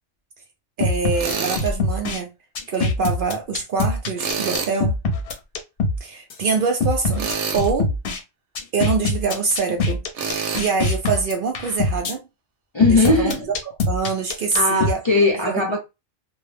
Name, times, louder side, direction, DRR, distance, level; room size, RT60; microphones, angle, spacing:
sound 1, 0.8-2.2 2.6-6.0 6.3-6.4 6.8-8.2 8.6-12.1 12.8-14.9, left 2 dB, 60° left, 0.8 m, -23 dB
voice 1, 0.8-2.3 2.7-5.0 6.0-7.9 8.7-10.0 10.5-12.2 12.9-13.3 13.9-15.0 15.5-15.6, right 5 dB, 60° right, 0.6 m, -24 dB
Tools, 1.2-1.7 4.2-4.8 7.2-7.7 10.1-10.6, right 6 dB, 85° right, 0.9 m, -26 dB
voice 2, 12.7-13.5 14.5-15.8, left 3 dB, 40° left, 0.4 m, -19 dB
2.2 x 2.1 x 3.2 m
omnidirectional pair, 1.2 m